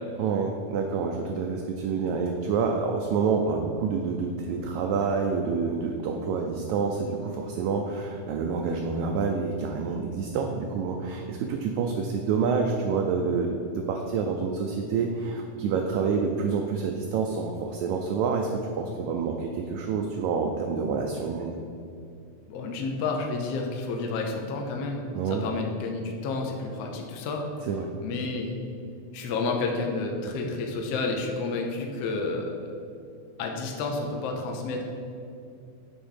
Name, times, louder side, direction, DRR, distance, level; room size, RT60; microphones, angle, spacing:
voice 1, 0.2-21.6 25.1-25.4 27.7-27.9, right 5 dB, 80° right, 2 dB, 1.7 m, -28 dB
voice 2, 22.5-27.4 28.0-28.6 29.1-32.5 33.4-34.8, left 3 dB, 75° left, 2 dB, 1.5 m, -30 dB
8.4 x 3.5 x 5.6 m, 2.5 s
omnidirectional pair, 3.7 m